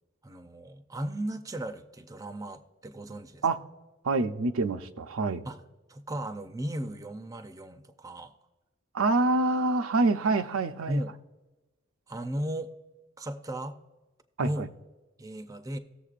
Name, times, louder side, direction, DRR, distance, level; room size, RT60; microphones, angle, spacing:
voice 1, 0.2-3.4 5.4-5.6 5.9-8.4 10.9-11.2 12.1-12.7 13.2-13.8 14.4-14.7 15.2-15.8, right 1 dB, 15° right, 9 dB, 0.5 m, -36 dB
voice 2, 4.0-5.4 8.9-11.0 14.4-14.5, right 3 dB, 85° right, 8 dB, 0.6 m, -26 dB
18.5 x 7.1 x 2.5 m, 1.1 s
head